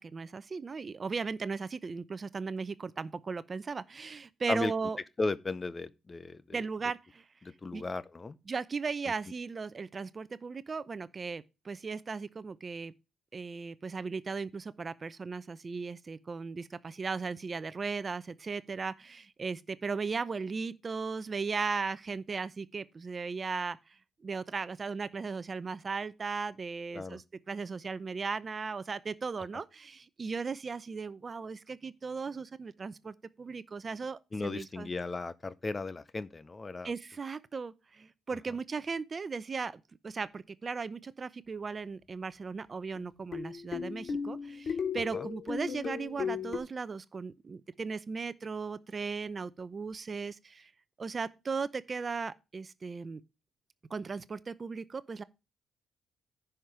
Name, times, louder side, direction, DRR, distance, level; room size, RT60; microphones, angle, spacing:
voice 1, 0.0-5.0 6.5-7.2 7.7-7.8 8.5-12.9 13.3-34.9 36.8-50.7 51.0-53.2 53.9-55.2, right 4 dB, 35° right, 0.7 m, -37 dB
voice 2, 5.2-6.6 7.4-8.4 26.9-27.2 34.3-36.9 45.1-45.3, left 3 dB, 25° left, 0.7 m, -35 dB
sound 1, 43.0-46.6, left 6 dB, 50° left, 2.4 m, -36 dB
10.0 x 5.9 x 5.0 m
cardioid pair, 90°, 0 cm